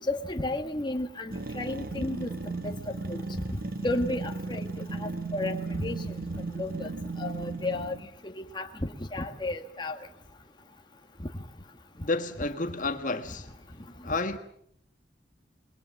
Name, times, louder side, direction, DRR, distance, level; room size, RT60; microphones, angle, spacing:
voice 1, 0.0-2.3 3.1-4.6 5.0-6.1 6.6-6.9 7.2-8.0 8.2-10.0, left 2 dB, 25° left, 1.7 m, -33 dB
sound 1, 1.3-8.1, right 3 dB, 55° right, 1.3 m, -36 dB
voice 2, 12.0-13.5 14.0-14.4, left 3 dB, 45° left, 1.6 m, -30 dB
28.0 x 22.0 x 7.2 m
head